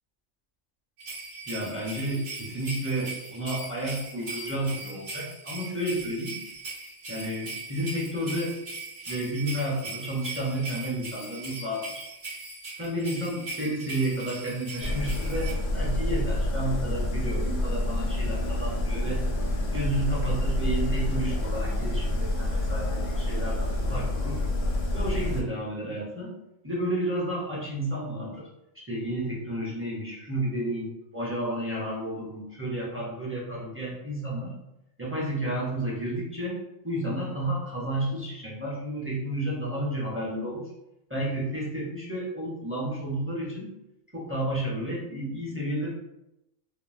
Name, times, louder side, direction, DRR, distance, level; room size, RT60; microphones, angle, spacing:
sound 1, 1.0-15.5, right 3 dB, 75° right, 1.8 m, -39 dB
voice 1, 1.5-6.4 7.1-8.6 9.1-12.0 12.8-19.2 19.7-24.4 24.9-26.3 26.6-28.5 28.7-34.5 35.0-36.6 36.8-40.7 41.1-43.7 44.1-45.9, right 1 dB, 15° right, -6 dB, 0.4 m, -31 dB
sound 2, 14.8-25.4, left 1 dB, 55° left, 0.6 m, -28 dB
3.7 x 2.1 x 2.5 m, 0.88 s
omnidirectional pair, 1.3 m